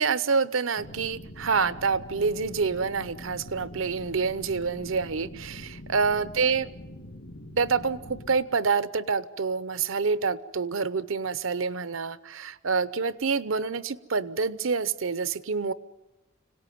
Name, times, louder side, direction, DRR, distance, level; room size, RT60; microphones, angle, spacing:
voice 1, 0.0-6.7 7.6-15.7, right 5 dB, 80° right, 16 dB, 0.8 m, -27 dB
sound 1, 0.8-8.3, left 1 dB, 65° left, 3.5 m, -44 dB
25.5 x 18.0 x 9.4 m, 1.0 s
head